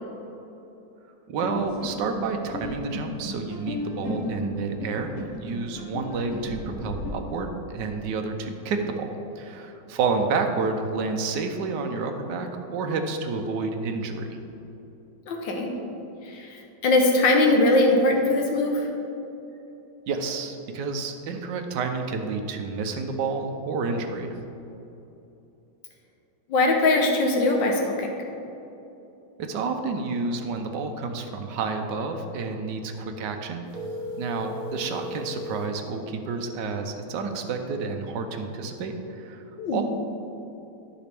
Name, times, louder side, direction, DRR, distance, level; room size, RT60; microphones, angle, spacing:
voice 1, 1.3-14.4 20.1-24.3 29.4-33.6 34.2-39.4 39.7-39.8, right 4 dB, 75° right, 5 dB, 1.4 m, -30 dB
sound 1, 1.4-7.1, left 1 dB, 65° left, 2.1 m, -34 dB
voice 2, 15.3-15.7 16.3-18.9 26.5-28.1 39.6-39.8, left 2 dB, 90° left, 1 dB, 1.7 m, -21 dB
sound 2, 33.7-35.8, left 1 dB, 55° right, 1.3 m, -35 dB
13.5 x 5.1 x 3.5 m, 2.9 s
omnidirectional pair, 2.0 m